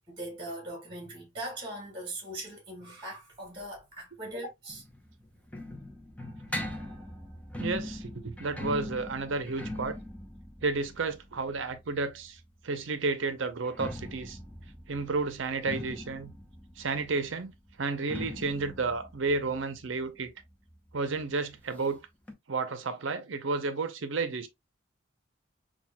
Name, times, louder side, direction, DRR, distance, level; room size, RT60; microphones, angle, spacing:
voice 1, 0.1-4.8, right 1 dB, 25° right, 1.5 m, -40 dB
sound 1, 4.7-12.4 13.5-20.9 21.2-21.3 21.5-21.6 22.3-22.4, left 1 dB, 5° left, 0.7 m, -41 dB
voice 2, 7.6-10.0 10.6-14.4 14.9-16.3 16.8-17.5 17.8-20.3 20.9-22.0 22.5-24.5, right 3 dB, 75° right, 0.6 m, -32 dB
5.8 x 2.3 x 2.2 m
head